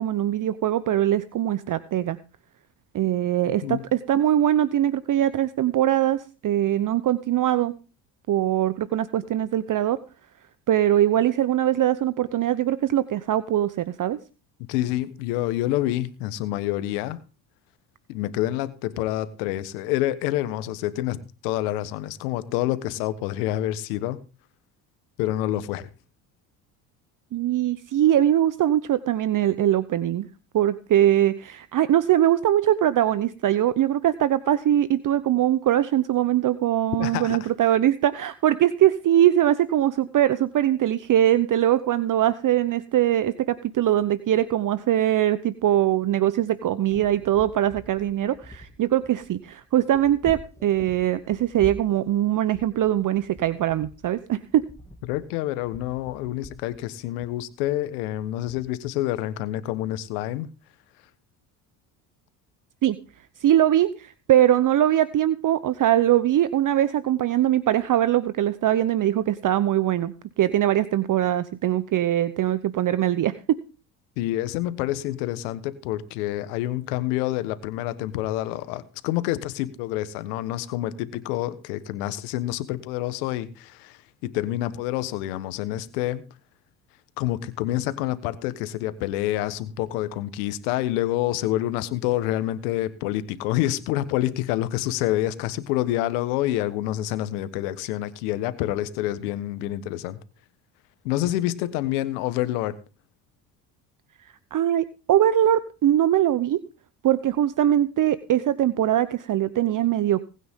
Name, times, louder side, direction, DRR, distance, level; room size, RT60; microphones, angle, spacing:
voice 1, 0.0-2.2 2.9-7.7 8.3-10.0 10.7-14.2 27.3-30.3 30.5-54.6 62.8-63.0 63.4-73.6 104.2-106.6 107.0-110.2, right 12 dB, 45° right, 16 dB, 0.8 m, -22 dB
voice 2, 3.4-3.8 14.7-17.2 18.1-24.2 25.2-25.9 37.0-37.5 55.1-60.5 74.2-86.2 87.2-100.2 101.0-102.8, left 14 dB, 85° left, 13 dB, 1.4 m, -27 dB
sound 1, 46.9-58.6, left 1 dB, 5° left, 2.3 m, -46 dB
19.5 x 9.3 x 3.7 m, 0.34 s
supercardioid pair, 75°, 45 cm